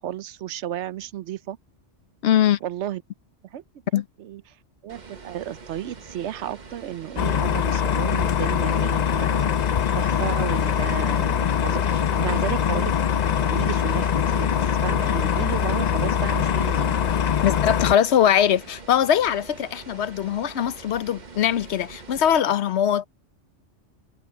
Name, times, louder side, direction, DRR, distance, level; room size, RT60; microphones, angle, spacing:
voice 1, 0.0-1.6 2.6-3.0 3.5-3.6 4.2-4.4 4.8-17.0, right 11 dB, 75° right, 0.9 m, -33 dB
voice 2, 2.2-2.6 3.9-4.0 17.4-23.1, left 9 dB, 70° left, 1.0 m, -21 dB
sound 1, 4.9-22.4, right 4 dB, 40° right, 1.2 m, -44 dB
sound 2, 7.2-17.9, left 8 dB, 50° left, 0.5 m, -23 dB
omnidirectional pair, 1.2 m